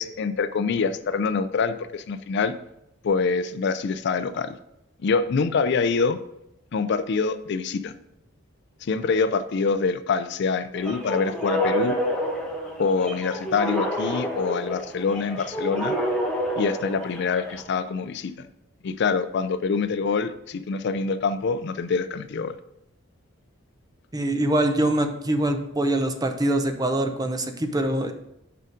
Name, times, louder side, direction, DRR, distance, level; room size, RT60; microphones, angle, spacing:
voice 1, 0.0-2.5 3.0-4.6 5.0-6.2 6.7-7.9 8.8-12.0 12.8-15.9 16.6-18.5 18.8-22.5, left 5 dB, 60° left, 13 dB, 0.4 m, -25 dB
sound 1, 10.8-17.6, equal, 5° left, 1.3 m, -28 dB
voice 2, 24.1-28.1, right 1 dB, 20° right, 7 dB, 0.7 m, -24 dB
6.7 x 4.9 x 5.1 m, 0.83 s
head